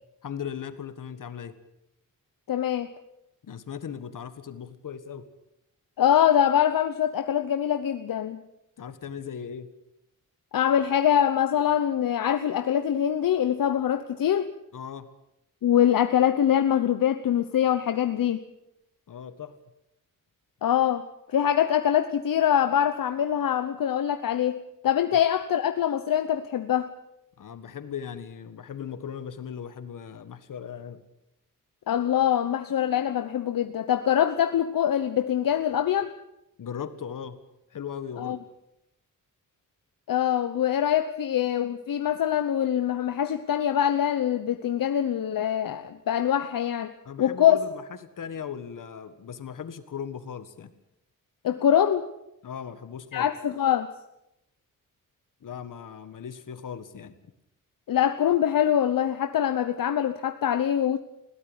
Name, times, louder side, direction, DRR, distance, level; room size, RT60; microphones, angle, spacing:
voice 1, 0.2-1.5 3.4-5.3 8.8-9.7 14.7-15.1 19.1-19.6 27.4-31.0 36.6-37.4 37.7-38.4 47.1-50.7 52.4-53.3 55.4-57.1, left 7 dB, 70° left, 11 dB, 1.8 m, -38 dB
voice 2, 2.5-2.9 6.0-8.4 10.5-14.5 15.6-18.4 20.6-26.9 31.9-36.1 38.2-38.4 40.1-46.9 47.2-47.6 51.4-52.1 53.1-53.9 57.9-61.0, left 10 dB, 85° left, 9 dB, 1.0 m, -24 dB
21.5 x 17.0 x 8.3 m, 0.85 s
wide cardioid pair, 140°, 33 cm